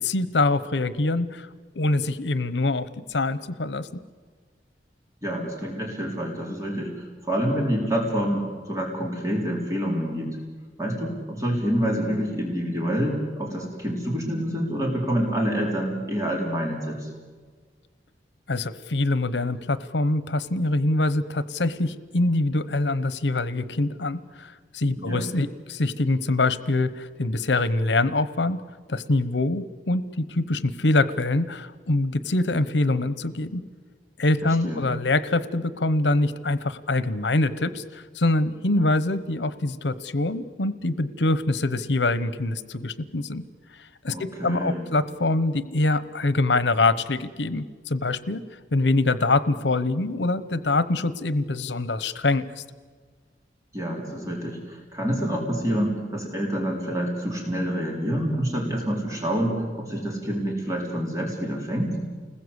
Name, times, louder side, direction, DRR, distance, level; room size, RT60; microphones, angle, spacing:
voice 1, 0.0-1.5 1.7-3.9 18.5-28.6 28.9-33.6 34.2-43.4 43.7-48.4 48.7-52.6, left 2 dB, 80° left, 15 dB, 1.0 m, -24 dB
voice 2, 5.2-10.4 10.8-17.1 25.0-25.3 34.4-34.9 44.1-44.9 53.7-62.0, equal, 20° right, -1 dB, 4.0 m, -27 dB
29.5 x 21.0 x 8.2 m, 1.5 s
head